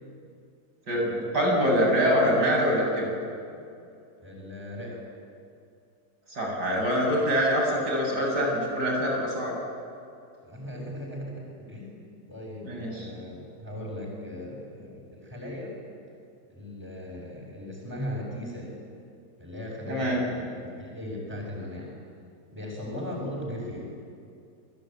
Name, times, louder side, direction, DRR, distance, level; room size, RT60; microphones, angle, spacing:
voice 1, 0.9-3.1 6.3-9.6 12.6-13.1 19.9-20.2, equal, 90° right, -1 dB, 8.5 m, -25 dB
voice 2, 4.2-5.0 10.4-15.8 16.5-18.8 19.4-22.0 22.5-24.0, left 1 dB, 10° right, -4 dB, 6.8 m, -38 dB
29.0 x 22.0 x 9.2 m, 2.5 s
omnidirectional pair, 1.7 m